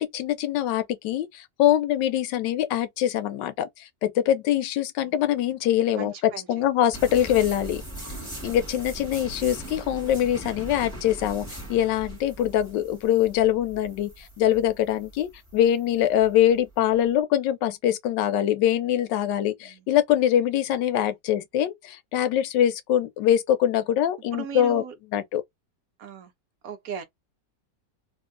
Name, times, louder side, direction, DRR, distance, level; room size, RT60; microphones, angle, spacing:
voice 1, 0.0-7.8 8.4-24.8 25.1-25.4, left 11 dB, 90° left, 1.3 m, -23 dB
voice 2, 5.9-6.6 9.0-9.3 19.6-19.8 24.3-24.9 26.0-26.3 26.6-27.0, right 7 dB, 65° right, 0.9 m, -38 dB
sound 1, 6.9-17.1, right 1 dB, 5° left, 1.4 m, -40 dB
2.9 x 2.6 x 2.4 m
omnidirectional pair, 1.9 m